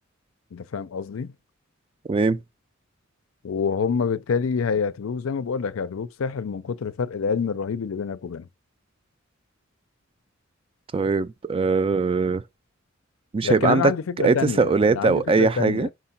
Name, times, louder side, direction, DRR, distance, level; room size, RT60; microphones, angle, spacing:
voice 1, 0.5-1.3 3.4-8.5 13.4-15.9, left 5 dB, 90° left, 0.5 m, -27 dB
voice 2, 2.1-2.4 10.9-12.4 13.3-13.9 14.2-15.9, right 4 dB, 25° right, 0.3 m, -21 dB
4.9 x 3.8 x 5.7 m
head